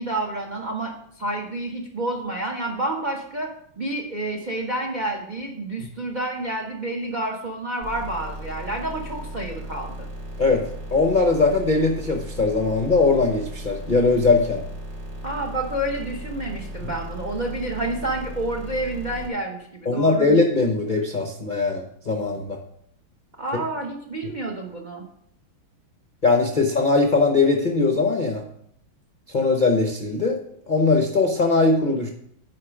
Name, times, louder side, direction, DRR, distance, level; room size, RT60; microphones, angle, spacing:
voice 1, 0.0-10.1 15.2-20.3 23.4-25.1, right 2 dB, 70° right, 2 dB, 0.4 m, -29 dB
sound 1, 7.8-19.3, right 1 dB, 50° right, 2.6 m, -36 dB
voice 2, 10.9-14.6 16.8-16.9 19.9-22.6 23.5-23.6 26.2-28.4 29.3-30.4 30.7-32.1, left 3 dB, 60° left, 2 dB, 0.5 m, -20 dB
9.2 x 4.9 x 5.0 m, 0.69 s
omnidirectional pair, 2.3 m